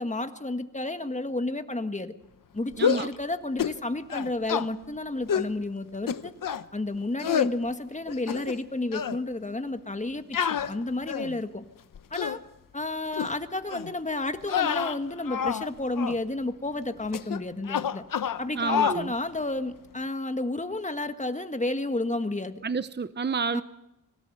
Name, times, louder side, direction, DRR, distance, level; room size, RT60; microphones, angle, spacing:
voice 1, 0.0-2.1 2.5-6.3 6.7-11.6 12.1-12.4 12.7-18.0 18.4-22.6 23.5-23.6, left 2 dB, 20° left, 8 dB, 1.7 m, -31 dB
sound 1, 2.7-3.2 3.6-3.8 4.1-4.7 5.3-5.5 6.1-6.6 7.2-7.5 8.1-8.7 8.9-9.2 10.3-11.4 11.9-12.4 13.1-13.3 13.7-13.9 14.4-15.7 16.0-16.2 17.1-17.4 17.7-18.4 18.7-19.0, left 8 dB, 85° left, 0.9 m, -28 dB
voice 2, 2.8-3.1 18.6-19.1 22.6-23.6, right 5 dB, 35° right, 13 dB, 0.8 m, -29 dB
25.0 x 17.5 x 8.0 m, 0.88 s
wide cardioid pair, 90°, 32 cm